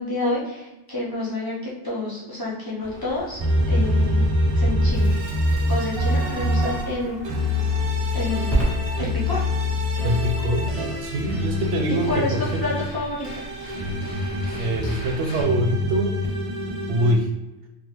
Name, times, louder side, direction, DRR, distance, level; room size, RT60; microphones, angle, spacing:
voice 1, 0.0-3.4 3.7-5.1 5.7-7.2 7.4-7.7 8.1-8.6 9.0-9.5 12.1-12.3 12.6-13.3, left 2 dB, 25° left, -8 dB, 0.7 m, -29 dB
sound 1, 2.8-7.9, left 1 dB, 60° left, 0.8 m, -38 dB
sound 2, 3.4-6.8 7.2-12.8 13.2-17.1, left 1 dB, 40° right, 0.5 m, -24 dB
Crackle, 4.6-15.4, right 2 dB, 75° left, 1.5 m, -34 dB
voice 2, 10.0-10.7 11.0-12.6 14.6-16.1 16.9-17.3, right 1 dB, 90° right, 3 dB, 0.9 m, -24 dB
3.5 x 2.2 x 2.9 m, 1.0 s
omnidirectional pair, 1.2 m